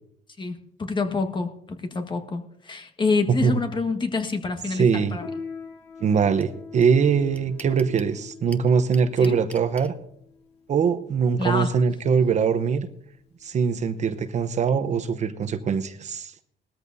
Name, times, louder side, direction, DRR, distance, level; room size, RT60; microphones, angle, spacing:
voice 1, 0.4-5.3 9.2-9.4 11.4-11.8, left 3 dB, 30° left, 6 dB, 1.6 m, -27 dB
voice 2, 4.7-5.2 6.0-10.0 10.7-12.9 13.4-16.3, right 6 dB, 45° right, 10 dB, 0.9 m, -22 dB
Piano, 5.2-15.1, left 5 dB, 75° left, 2.0 m, -43 dB
sound 1, 6.4-6.5 6.8-6.9 7.1-8.1 8.5-9.9, left 1 dB, 10° left, 0.8 m, -44 dB
19.5 x 13.5 x 2.7 m, 0.72 s
cardioid pair, 110°, 17 cm